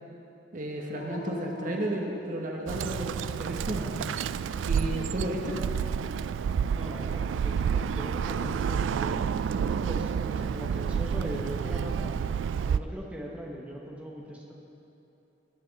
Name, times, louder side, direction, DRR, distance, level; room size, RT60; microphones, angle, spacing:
voice 1, 0.5-3.9 4.7-5.6, right 1 dB, 45° right, 1 dB, 1.1 m, -33 dB
Dog, 0.9-2.8 3.4-4.2 6.5-7.4, left 1 dB, 90° left, 2.3 m, -42 dB
Bird, 2.7-12.8, right 7 dB, 85° right, 0.3 m, -29 dB
voice 2, 6.7-12.1 12.6-14.5, equal, 5° right, -2 dB, 1.2 m, -40 dB
19.0 x 7.6 x 4.1 m, 3.0 s
head